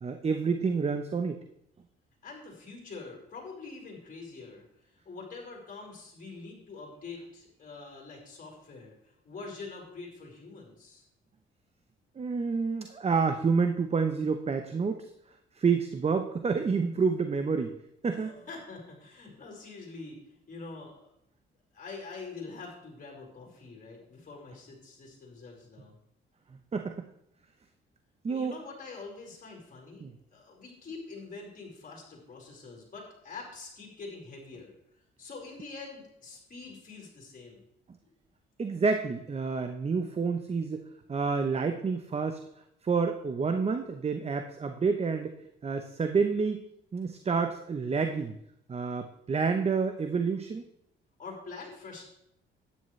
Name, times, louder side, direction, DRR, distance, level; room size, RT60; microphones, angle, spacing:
voice 1, 0.0-1.4 12.2-15.1 15.6-17.7 18.0-18.3 26.7-27.1 28.2-28.5 30.0-30.1 38.6-42.4 42.8-45.4 45.6-46.6 46.9-48.3 48.7-50.6, right 5 dB, 30° right, 7 dB, 0.8 m, -28 dB
voice 2, 2.2-4.6 5.0-11.0 18.1-20.2 20.5-21.1 21.7-25.9 28.3-34.8 35.2-37.6 38.0-38.1 51.2-52.0, left 4 dB, 45° left, -1 dB, 4.9 m, -45 dB
12.5 x 10.0 x 3.3 m, 0.77 s
cardioid pair, 90°, 20 cm